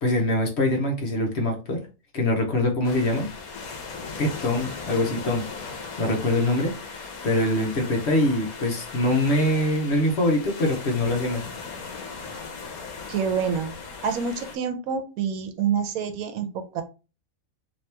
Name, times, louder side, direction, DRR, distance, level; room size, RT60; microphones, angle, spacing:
voice 1, 0.0-1.8 2.1-3.3 4.2-11.4, left 1 dB, 55° left, 2 dB, 1.0 m, -24 dB
sound 1, 2.8-14.6, left 4 dB, 85° left, 1.2 m, -38 dB
voice 2, 13.1-13.7 14.0-16.8, right 7 dB, 80° right, 8 dB, 1.1 m, -27 dB
2.9 x 2.9 x 3.3 m, 0.32 s
omnidirectional pair, 1.5 m